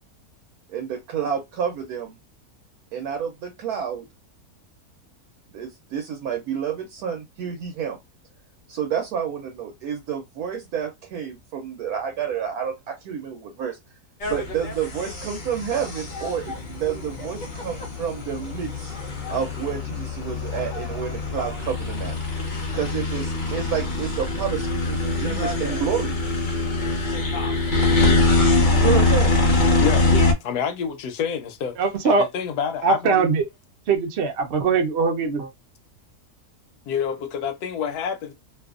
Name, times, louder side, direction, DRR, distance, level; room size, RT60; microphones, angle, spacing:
voice 1, 0.7-2.1 2.9-4.1 5.5-8.0 8.7-13.8 14.3-19.0 19.3-22.1 22.7-26.1 28.7-29.4, right 8 dB, 75° right, 1.1 m, -29 dB
sound 1, 14.2-30.3, left 2 dB, 50° left, 0.5 m, -23 dB
voice 2, 30.4-31.8 32.0-33.2 36.9-38.3, left 7 dB, 80° left, 1.1 m, -27 dB
voice 3, 31.8-32.2 32.8-33.4 33.9-35.5, right 4 dB, 60° right, 0.7 m, -21 dB
2.7 x 2.4 x 2.3 m
omnidirectional pair, 1.7 m